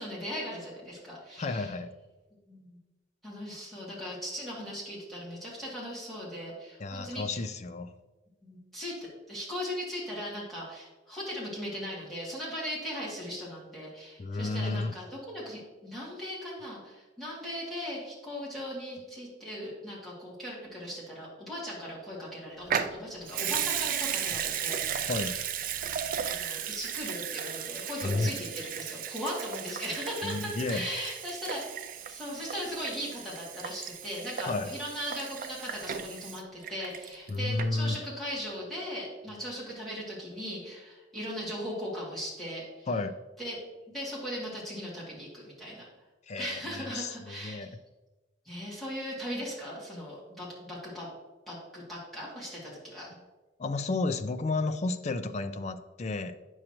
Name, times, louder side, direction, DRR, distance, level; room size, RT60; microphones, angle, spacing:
voice 1, 0.0-1.7 2.5-2.8 3.2-7.4 8.4-25.3 26.2-42.9 43.4-43.6 43.9-45.9 46.4-47.7 48.4-51.1 51.5-53.1, equal, ahead, -8 dB, 2.3 m, -38 dB
voice 2, 1.4-1.9 6.8-7.9 14.2-15.0 25.1-25.4 28.0-28.3 30.2-30.8 34.5-34.7 37.3-38.0 42.9-43.1 46.3-47.7 53.6-56.3, left 3 dB, 35° left, 9 dB, 0.4 m, -32 dB
Water tap faucet / Sink (filling or washing) / Liquid, 22.7-37.3 37.6-37.7, right 8 dB, 40° right, 0.3 m, -35 dB
8.8 x 6.3 x 2.9 m, 1.2 s
head